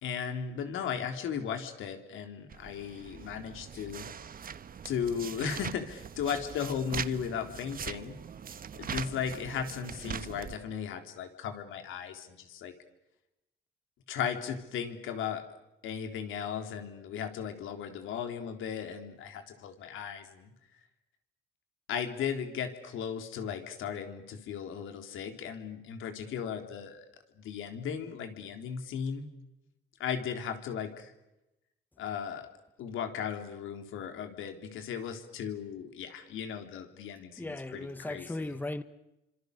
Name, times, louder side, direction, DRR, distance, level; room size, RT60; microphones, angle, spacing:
voice 1, 0.0-4.1 4.8-8.2 8.7-12.7 14.1-15.4 15.8-20.5 21.9-27.1 27.4-29.3 30.0-31.1 32.0-32.5 32.8-38.5, left 7 dB, 85° left, 3.8 m, -36 dB
sound 1, 2.5-10.6, right 7 dB, 45° right, 1.3 m, -42 dB
voice 2, 37.4-38.8, left 2 dB, 10° left, 1.5 m, -37 dB
29.5 x 26.0 x 6.8 m
cardioid pair, 90°, 20 cm